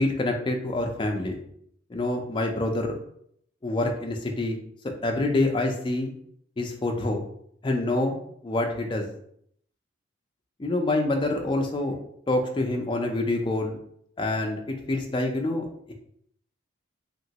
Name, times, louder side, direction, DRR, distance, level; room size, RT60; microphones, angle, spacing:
voice 1, 0.0-1.4 1.9-3.0 3.6-4.6 5.0-6.1 6.6-7.2 7.6-8.2 8.4-9.1 10.6-12.0 12.3-13.8 14.2-15.9, left 2 dB, 25° left, 2 dB, 0.3 m, -26 dB
2.9 x 2.9 x 2.8 m, 0.68 s
head